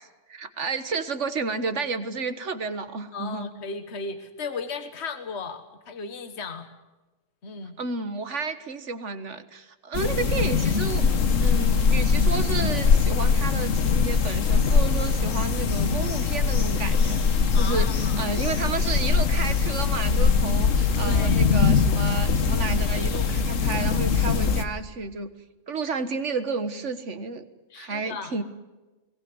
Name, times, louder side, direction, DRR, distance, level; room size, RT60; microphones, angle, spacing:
voice 1, 0.3-3.5 7.8-25.3 25.7-27.4 27.8-28.4, right 4 dB, 65° right, 10 dB, 1.7 m, -31 dB
voice 2, 3.1-6.7 7.4-7.8 17.5-18.3 21.0-21.5 27.7-28.4, left 4 dB, 55° left, 8 dB, 1.7 m, -36 dB
sound 1, 9.9-24.6, left 5 dB, 75° left, 1.6 m, -22 dB
22.5 x 18.5 x 9.6 m, 1.1 s
omnidirectional pair, 1.3 m